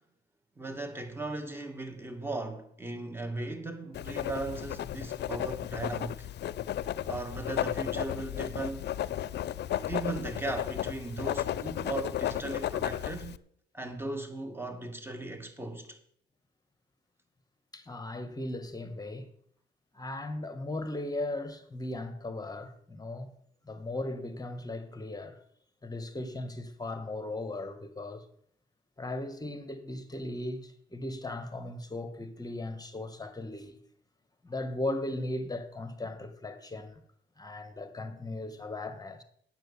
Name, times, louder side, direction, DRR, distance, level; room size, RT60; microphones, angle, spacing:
voice 1, 0.6-6.3 7.1-8.9 9.9-13.4 13.7-16.0, right 2 dB, 10° right, 2.2 m, -37 dB
Writing, 3.9-13.4, left 11 dB, 60° left, 0.5 m, -34 dB
voice 2, 17.7-19.3 19.9-23.3 23.6-25.4 25.8-28.3 29.0-33.8 34.4-37.0 37.4-39.2, left 2 dB, 20° left, 1.5 m, -37 dB
9.0 x 8.1 x 7.1 m
cardioid pair, 90°, 20 cm